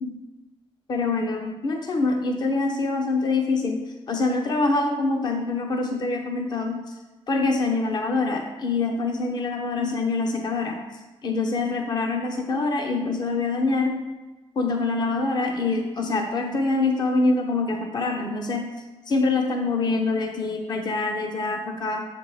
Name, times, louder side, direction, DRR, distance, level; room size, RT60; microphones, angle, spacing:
voice 1, 0.9-3.8 4.1-6.8 7.3-10.8 11.2-14.0 14.6-18.7 19.1-22.1, left 3 dB, 40° left, 3 dB, 0.6 m, -25 dB
7.3 x 4.6 x 3.9 m, 1.2 s
wide cardioid pair, 150°, 11 cm